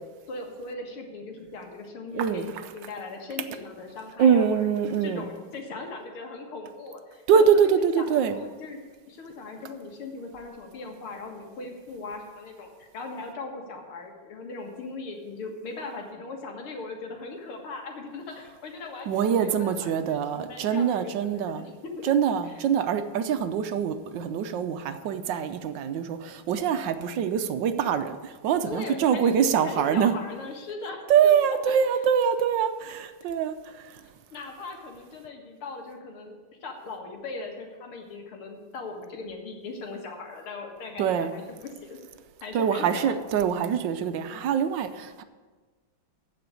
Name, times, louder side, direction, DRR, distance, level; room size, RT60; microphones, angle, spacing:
voice 1, 0.3-4.7 5.0-8.8 9.1-22.1 22.4-22.6 28.7-31.3 31.7-31.8 33.2-33.3 34.3-42.0 42.4-43.2, left 3 dB, 85° left, 2 dB, 2.6 m, -39 dB
voice 2, 2.1-2.5 4.2-5.3 7.3-8.4 19.1-21.7 22.0-30.1 31.1-33.6 41.0-41.3 42.5-45.2, right 7 dB, 70° right, 10 dB, 1.2 m, -24 dB
14.5 x 5.1 x 8.2 m, 1.4 s
omnidirectional pair, 2.3 m